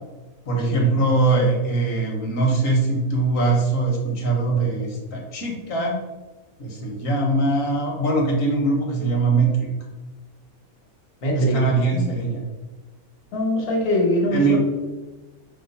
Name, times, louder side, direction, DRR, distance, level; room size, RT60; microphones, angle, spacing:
voice 1, 0.5-5.9 6.6-9.7 11.3-12.4 14.3-14.6, right 3 dB, 65° left, 0 dB, 1.3 m, -21 dB
voice 2, 11.2-12.1 13.3-14.6, left 1 dB, 85° left, -2 dB, 1.5 m, -23 dB
5.5 x 2.0 x 3.9 m, 1.2 s
omnidirectional pair, 1.5 m